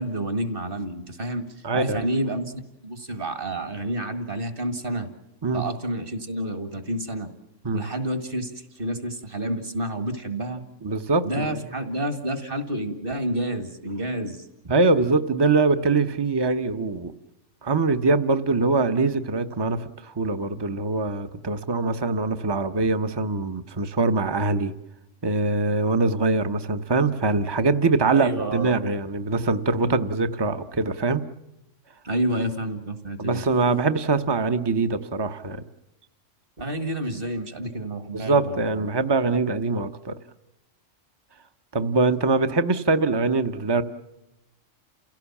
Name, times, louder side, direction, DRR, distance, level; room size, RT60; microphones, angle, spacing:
voice 1, 0.0-1.5 1.7-5.1 5.5-7.3 7.7-10.6 11.3-14.4 28.1-28.9 32.0-33.4 36.6-38.9, right 1 dB, 45° right, 9 dB, 2.1 m, -29 dB
voice 2, 1.6-2.1 5.4-5.7 7.6-7.8 10.8-11.7 14.7-17.1 17.6-24.7 25.2-31.2 33.2-35.6 38.1-40.2 41.7-43.8, right 3 dB, 20° right, 11 dB, 0.9 m, -23 dB
29.5 x 17.0 x 7.2 m, 0.92 s
omnidirectional pair, 1.3 m